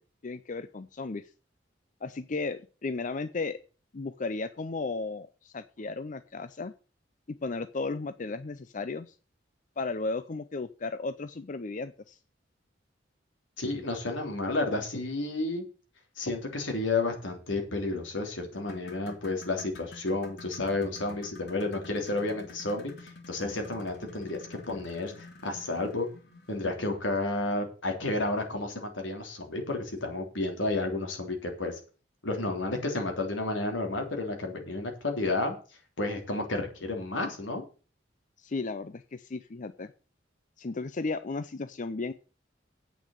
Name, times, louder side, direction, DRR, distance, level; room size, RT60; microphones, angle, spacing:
voice 1, 0.2-1.3 2.0-3.6 3.9-6.7 7.3-9.1 9.8-12.2 38.4-39.9 40.6-42.1, left 3 dB, 40° left, 12 dB, 0.5 m, -35 dB
voice 2, 13.6-15.6 16.2-26.1 26.5-31.8 32.2-35.6 36.0-37.7, left 2 dB, 85° left, 3 dB, 3.5 m, -31 dB
sound 1, 18.5-27.0 28.4-28.5 29.0-29.1 29.7-29.8, left 3 dB, 60° left, 3.1 m, -50 dB
8.6 x 6.7 x 8.0 m, 0.36 s
head